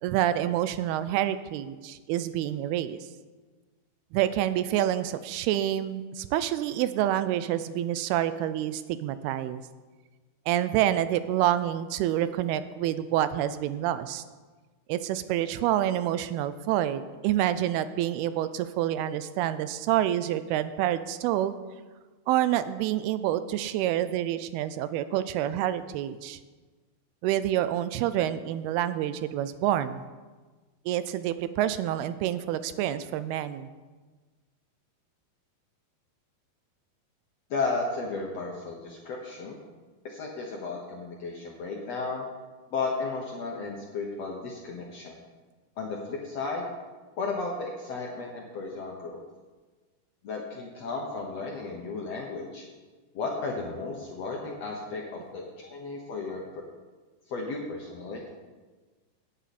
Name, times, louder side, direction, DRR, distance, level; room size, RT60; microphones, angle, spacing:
voice 1, 0.0-3.0 4.1-9.6 10.5-14.2 14.9-21.6 22.3-26.4 27.2-30.0 30.9-33.7, right 12 dB, 85° right, 13 dB, 2.5 m, -27 dB
voice 2, 37.5-39.6 40.0-42.2 42.7-45.2 45.8-46.7 47.2-49.2 50.2-52.6 53.1-56.6 57.3-58.2, left 3 dB, 70° left, -1 dB, 1.6 m, -34 dB
17.5 x 8.3 x 4.2 m, 1.3 s
omnidirectional pair, 4.5 m